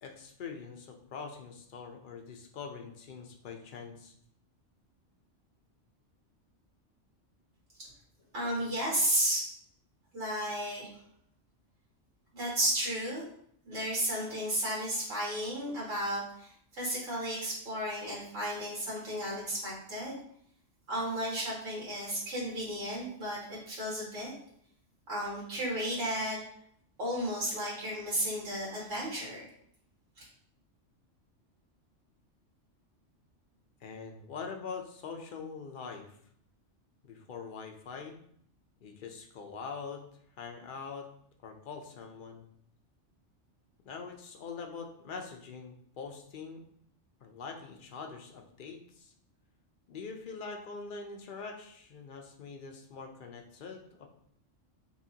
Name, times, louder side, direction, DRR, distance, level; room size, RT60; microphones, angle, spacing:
voice 1, 0.0-4.1 33.8-36.1 37.0-38.2 38.8-40.0 40.4-41.1 41.4-42.4 43.9-46.6 47.2-49.1 49.9-54.1, left 5 dB, 55° left, 3 dB, 0.6 m, -43 dB
voice 2, 8.3-9.5 10.1-10.9 12.3-13.2 13.7-16.5 16.8-20.2 20.9-24.3 25.1-26.4 27.0-29.4 30.2-30.3, right 1 dB, 85° right, -6 dB, 1.9 m, -33 dB
5.5 x 2.4 x 2.8 m, 0.65 s
omnidirectional pair, 1.3 m